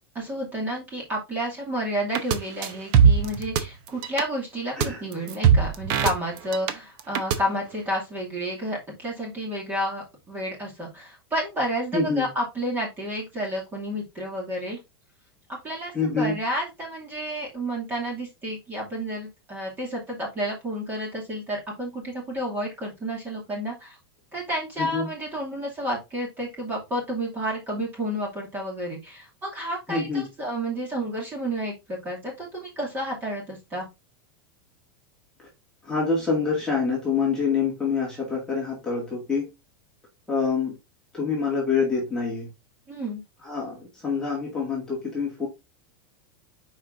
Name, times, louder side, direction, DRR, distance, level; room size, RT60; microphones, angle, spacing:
voice 1, 0.1-14.8 15.6-24.0 24.3-33.9 42.9-43.2, equal, 15° right, 2.5 m, -31 dB
sound 1, 2.1-2.4 2.6-3.6 3.9-4.2 4.8-4.9 5.1-6.7 7.0-7.4, right 7 dB, 35° right, 0.8 m, -19 dB
voice 2, 11.9-12.3 15.9-16.3 24.8-25.1 29.9-30.3 35.8-39.5 40.3-40.8 41.1-42.5 43.4-45.5, left 5 dB, 5° left, 2.0 m, -26 dB
6.3 x 4.8 x 3.7 m
supercardioid pair, 175°, 12 cm